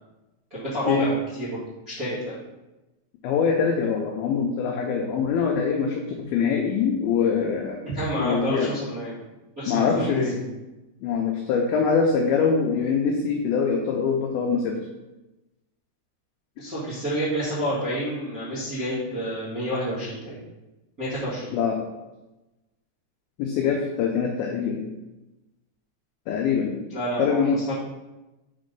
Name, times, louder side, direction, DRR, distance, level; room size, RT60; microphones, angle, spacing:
voice 1, 0.5-2.4 7.8-9.3 9.5-10.4 16.6-20.4 21.0-21.5 26.9-27.7, equal, 45° right, -12 dB, 1.1 m, -29 dB
voice 2, 3.2-7.8 8.2-8.7 9.7-10.3 11.0-14.8 21.5-21.8 23.4-24.9 26.3-26.8 27.2-27.6, left 6 dB, 85° left, 1 dB, 2.1 m, -23 dB
6.1 x 4.2 x 5.2 m, 1.0 s
omnidirectional pair, 5.0 m